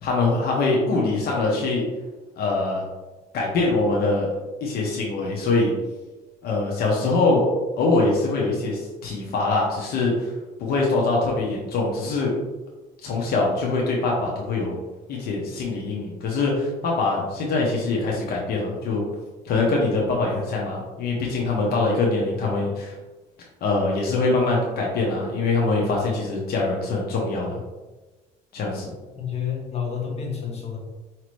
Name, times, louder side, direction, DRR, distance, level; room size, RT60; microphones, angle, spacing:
voice 1, 0.0-1.8 2.4-2.8 3.3-4.3 4.6-5.7 6.4-7.5 7.7-10.3 10.6-12.3 13.0-14.8 15.1-19.0 19.4-22.9 23.6-27.6 28.5-28.9, left 3 dB, 65° left, -2 dB, 0.9 m, -23 dB
voice 2, 29.1-30.8, left 7 dB, 40° left, -1 dB, 1.2 m, -29 dB
5.0 x 2.9 x 3.1 m, 1.2 s
cardioid pair, 110°, 17 cm